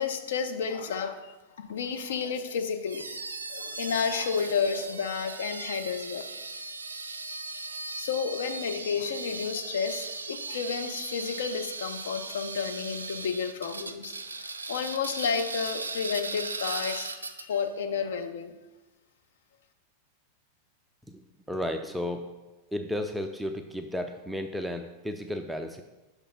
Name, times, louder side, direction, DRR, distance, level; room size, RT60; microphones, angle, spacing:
voice 1, 0.0-3.0 3.5-6.2 8.0-18.5, left 6 dB, 60° left, 6 dB, 0.6 m, -31 dB
sound 1, 2.9-17.7, right 3 dB, 75° right, 0.4 m, -38 dB
voice 2, 21.5-22.3 22.7-25.8, left 1 dB, 5° right, 5 dB, 0.3 m, -33 dB
5.9 x 3.4 x 5.7 m, 1.1 s
figure-of-eight pair, 90°, 0 cm